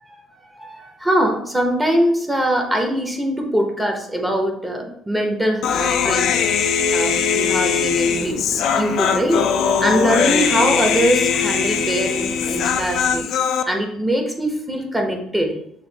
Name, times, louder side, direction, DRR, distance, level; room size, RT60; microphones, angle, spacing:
voice 1, 0.1-6.3 6.9-13.3 13.7-15.6, equal, 10° right, 2 dB, 0.7 m, -22 dB
Human voice, 5.6-13.6, left 7 dB, 70° left, 0.3 m, -20 dB
sound 1, 5.6-13.2, right 3 dB, 80° right, 0.5 m, -38 dB
6.4 x 2.5 x 2.8 m, 0.71 s
cardioid pair, 110°, 0 cm